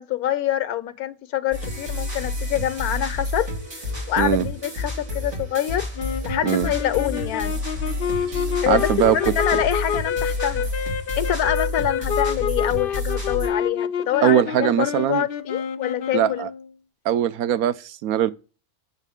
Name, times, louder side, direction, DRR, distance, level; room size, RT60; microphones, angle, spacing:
voice 1, 0.0-3.5 4.1-5.9 6.2-7.6 8.6-10.7 11.2-16.5, left 11 dB, 90° left, 1.3 m, -25 dB
sound 1, 1.5-13.5, left 2 dB, 50° right, 3.2 m, -29 dB
sound 2, 6.0-16.7, left 7 dB, 65° left, 0.5 m, -28 dB
voice 2, 8.3-9.2 14.2-15.3 16.1-16.5 17.0-18.3, right 11 dB, 80° right, 1.1 m, -21 dB
8.3 x 6.8 x 3.5 m
omnidirectional pair, 1.5 m